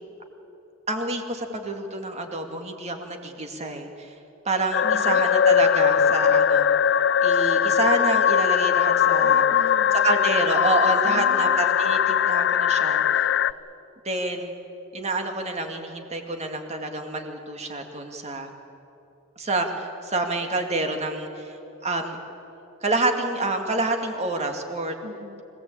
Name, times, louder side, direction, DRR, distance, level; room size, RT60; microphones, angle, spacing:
voice 1, 0.9-4.1 4.4-6.8 7.2-9.4 10.0-13.4 14.0-14.5 14.9-18.5 19.4-21.6 21.8-22.2 22.8-25.0, right 2 dB, 35° right, 4 dB, 2.3 m, -28 dB
sound 1, 4.7-13.5, left 8 dB, 55° left, 0.5 m, -20 dB
voice 2, 4.8-5.2 9.2-10.5 11.0-11.6 25.0-25.4, right 1 dB, 50° right, 3 dB, 1.3 m, -40 dB
25.0 x 17.5 x 8.7 m, 3.0 s
head